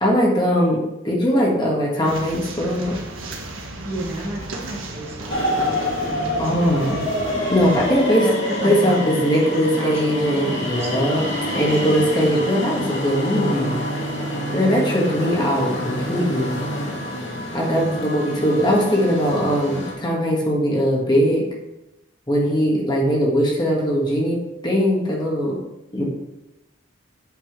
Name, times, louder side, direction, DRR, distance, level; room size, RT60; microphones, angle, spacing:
voice 1, 0.0-3.0 6.4-7.1 7.5-8.3 8.6-11.2 11.5-13.7 14.5-16.6 17.5-21.5 22.3-25.6 25.9-26.0, equal, 20° left, -3 dB, 1.5 m, -20 dB
sound 1, 2.0-7.9, right 2 dB, 75° right, 1.5 m, -35 dB
voice 2, 3.8-7.0 8.2-11.3 11.7-11.9 17.6-18.1, right 1 dB, 15° right, -3 dB, 1.5 m, -33 dB
sound 2, 5.3-19.9, equal, 60° left, 2.4 m, -27 dB
8.4 x 6.0 x 4.6 m, 0.95 s
head